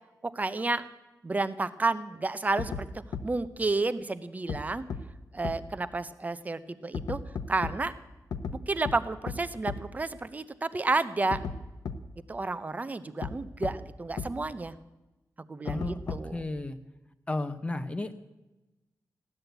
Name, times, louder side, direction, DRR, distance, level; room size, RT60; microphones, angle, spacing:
voice 1, 0.2-0.9 1.2-2.9 3.2-4.8 5.3-7.2 7.5-7.9 8.7-11.4 12.3-14.7 15.5-16.4, right 3 dB, 25° right, 13 dB, 0.7 m, -31 dB
sound 1, 2.6-2.8 3.1-3.2 4.5-4.6 4.9-5.0 5.4-5.5 6.9-7.7 8.3-8.5 8.8-8.9 9.3-9.4 9.7-9.8 11.3-11.5 11.8-11.9 13.2-13.3 13.6-13.7 14.2-14.3 15.7-16.4, left 6 dB, 90° left, 1.0 m, -33 dB
voice 2, 15.6-16.8 17.3-18.3, left 2 dB, 20° left, 9 dB, 0.8 m, -34 dB
15.5 x 11.0 x 8.0 m, 1.0 s
wide cardioid pair, 160°, 7 cm